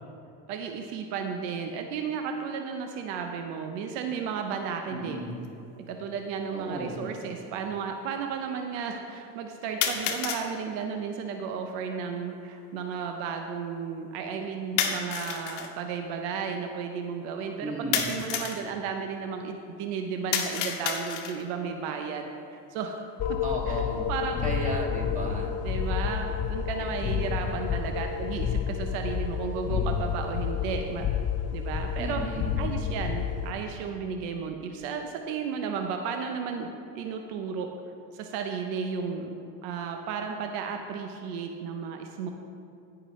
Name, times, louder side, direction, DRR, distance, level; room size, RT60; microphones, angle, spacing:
voice 1, 0.5-5.2 5.8-23.1 23.7-23.8 24.1-24.5 25.6-31.0 31.5-32.2 32.6-37.7 38.1-39.3 39.6-42.3, right 6 dB, 80° right, 4 dB, 0.8 m, -33 dB
voice 2, 4.9-5.4 6.5-7.2 17.6-18.2 23.4-24.2 24.4-25.6 26.8-26.9 32.0-32.7, right 1 dB, 20° right, -2 dB, 2.2 m, -35 dB
sound 1, 5.4-5.5 6.5-6.6 9.8-10.5 14.8-15.7 17.9-18.6 20.3-21.5, left 8 dB, 85° left, 1.0 m, -29 dB
sound 2, 23.2-33.5, left 8 dB, 40° left, 0.6 m, -30 dB
17.0 x 6.0 x 3.1 m, 2.6 s
supercardioid pair, 95°, 40 cm